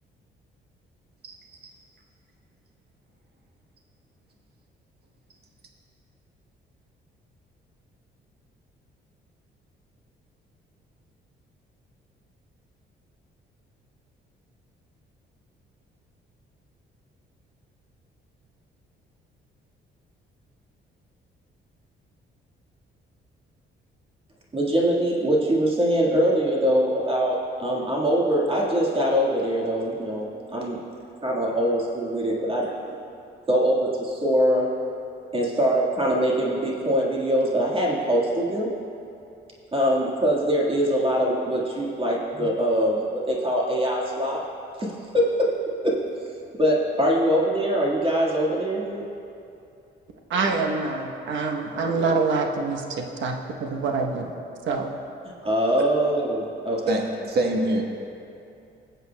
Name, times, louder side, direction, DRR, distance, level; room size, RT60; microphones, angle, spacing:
voice 1, 24.5-30.8 31.2-33.0 33.5-34.7 35.3-38.7 39.7-44.5 44.8-45.5 45.8-46.0 46.6-49.0 55.4-56.9, equal, 25° right, -4 dB, 1.7 m, -23 dB
voice 2, 50.3-54.3 54.7-54.9, right 4 dB, 75° right, 2 dB, 1.0 m, -26 dB
voice 3, 56.9-57.8, right 1 dB, 55° right, 1 dB, 1.3 m, -24 dB
19.0 x 7.9 x 2.3 m, 2.6 s
cardioid pair, 90°, 20 cm